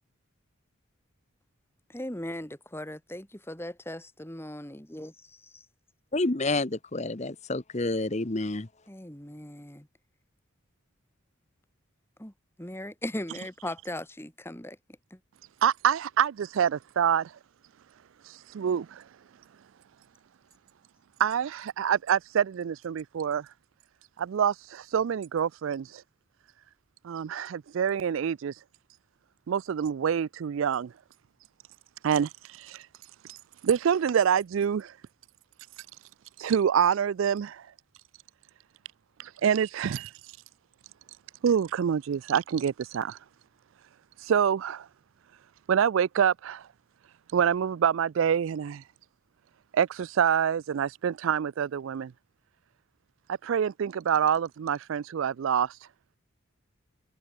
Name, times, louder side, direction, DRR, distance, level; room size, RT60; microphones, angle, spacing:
voice 1, 1.9-5.1 5.5-5.7 8.9-9.9 12.2-12.3 12.6-14.8 15.1-15.2, left 1 dB, 10° left, 2.3 m, -38 dB
voice 2, 6.1-8.7, left 2 dB, 35° left, 1.0 m, -29 dB
voice 3, 15.6-17.3 18.3-19.0 21.2-23.5 24.2-26.0 27.0-28.5 29.5-30.9 32.0-32.8 33.6-34.9 36.4-37.6 39.2-40.1 41.4-43.2 44.2-44.9 45.7-46.6 47.3-48.8 49.7-52.1 53.4-55.7, right 8 dB, 70° right, 0.4 m, -26 dB
head